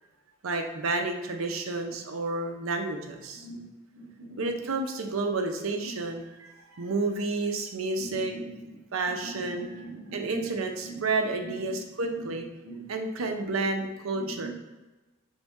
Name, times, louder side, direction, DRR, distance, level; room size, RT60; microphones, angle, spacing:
voice 1, 0.4-3.5 4.4-8.3 8.9-9.8 10.1-12.4 12.9-14.5, right 3 dB, 85° right, 4 dB, 0.6 m, -30 dB
voice 2, 3.3-3.7 3.9-4.5 5.8-6.0 8.0-8.8 9.1-11.0 11.4-12.3 12.6-12.8 13.2-13.3 14.2-14.5, right 2 dB, 55° right, -7 dB, 0.9 m, -42 dB
4.1 x 3.5 x 3.6 m, 1.1 s
head